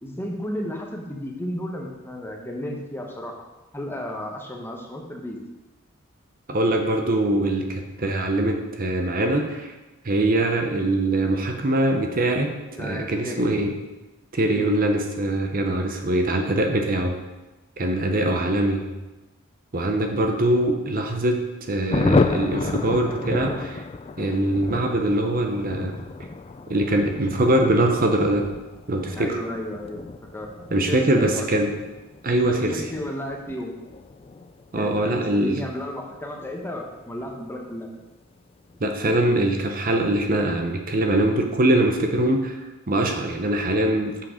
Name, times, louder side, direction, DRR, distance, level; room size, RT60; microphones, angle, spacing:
voice 1, 0.0-3.4 3.7-5.4 12.8-13.5 14.5-14.7 18.2-18.5 29.1-30.1 30.3-30.5 30.9-31.5 32.4-33.7 34.8-37.9, left 1 dB, 10° left, 0 dB, 1.0 m, -33 dB
voice 2, 6.5-9.7 10.0-12.5 12.8-13.7 14.3-17.1 17.8-18.9 19.7-21.4 21.7-23.8 24.2-26.0 26.7-28.5 28.9-29.4 30.7-31.7 32.2-32.8 34.7-35.7 38.8-42.6 42.9-44.3, right 1 dB, 40° right, 4 dB, 0.8 m, -22 dB
Thunder, 21.9-38.0 38.3-38.4 38.7-38.8 39.1-39.5, left 3 dB, 25° left, 0.3 m, -31 dB
7.7 x 5.9 x 5.0 m, 1.1 s
head